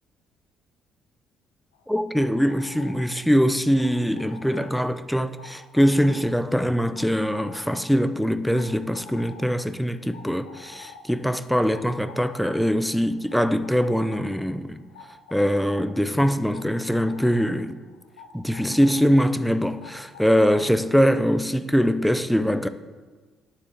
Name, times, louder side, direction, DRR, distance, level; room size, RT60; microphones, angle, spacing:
sound 1, 1.7-21.2, left 4 dB, 75° left, 1.0 m, -48 dB
voice 1, 1.9-14.8 15.3-17.8 18.3-22.7, equal, ahead, 0.8 m, -22 dB
9.9 x 7.1 x 7.8 m
figure-of-eight pair, 45°, 0 cm